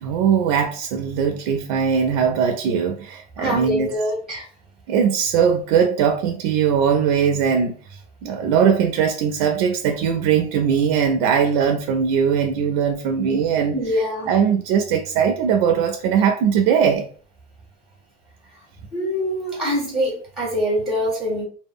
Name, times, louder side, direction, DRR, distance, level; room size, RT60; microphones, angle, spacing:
voice 1, 0.0-3.9 4.9-7.7 8.2-17.1, right 7 dB, 65° right, 0.4 m, -20 dB
voice 2, 3.4-4.4 13.7-14.4 18.9-21.4, equal, ahead, 0.7 m, -24 dB
2.1 x 2.0 x 3.4 m
supercardioid pair, 150°, 20 cm